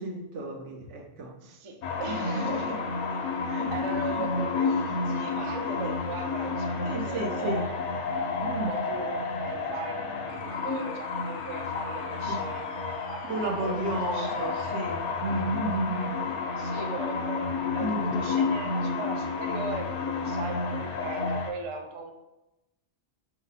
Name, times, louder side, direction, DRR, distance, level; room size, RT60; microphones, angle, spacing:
voice 1, 0.0-1.3 2.1-2.7 3.6-4.2 6.8-7.7 8.4-8.8 12.3-12.5 13.2-16.2 17.8-18.3, right 2 dB, 85° right, 1 dB, 1.1 m, -33 dB
voice 2, 1.4-2.9 3.4-7.7 8.4-14.3 14.6-14.7 16.6-17.4 17.7-22.1, right 3 dB, 50° right, 3 dB, 0.4 m, -38 dB
sound 1, 1.8-21.5, left 4 dB, 80° left, 0.9 m, -30 dB
4.5 x 2.0 x 4.0 m, 0.93 s
omnidirectional pair, 1.2 m